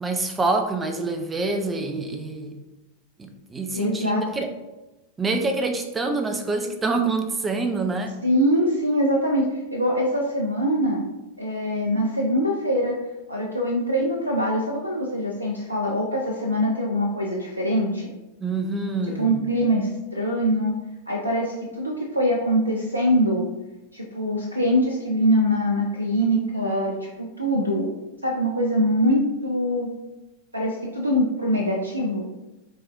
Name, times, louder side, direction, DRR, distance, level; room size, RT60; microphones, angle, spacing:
voice 1, 0.0-2.6 3.2-4.5 5.2-8.2 18.4-19.4, right 3 dB, 15° right, 6 dB, 0.5 m, -26 dB
voice 2, 3.7-4.2 8.2-11.0 11.4-13.0 13.3-18.1 19.2-20.8 21.1-23.5 23.9-27.9 28.2-29.9 30.5-32.2, equal, 85° right, -1 dB, 0.5 m, -23 dB
5.5 x 3.3 x 2.6 m, 1.0 s
figure-of-eight pair, 90°, 0 cm